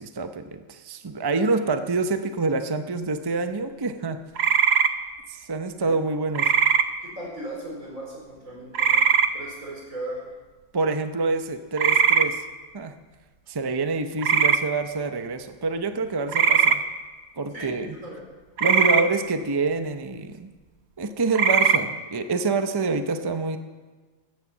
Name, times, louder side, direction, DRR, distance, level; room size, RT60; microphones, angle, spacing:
voice 1, 0.0-4.2 5.3-6.5 10.7-12.4 12.7-13.0 13.5-16.8 17.4-18.0 18.6-20.5 21.0-23.6, right 3 dB, 25° right, 8 dB, 0.7 m, -27 dB
sound 1, 4.4-4.9 6.4-6.8 8.7-9.3 11.8-12.3 14.2-14.6 16.3-16.8 18.6-19.0 21.3-21.8, right 6 dB, 55° right, 1.1 m, -19 dB
voice 2, 7.0-10.3 17.5-18.2 18.6-18.7, right 1 dB, 85° right, -2 dB, 5.0 m, -37 dB
15.5 x 9.8 x 7.3 m, 1.3 s
omnidirectional pair, 1.4 m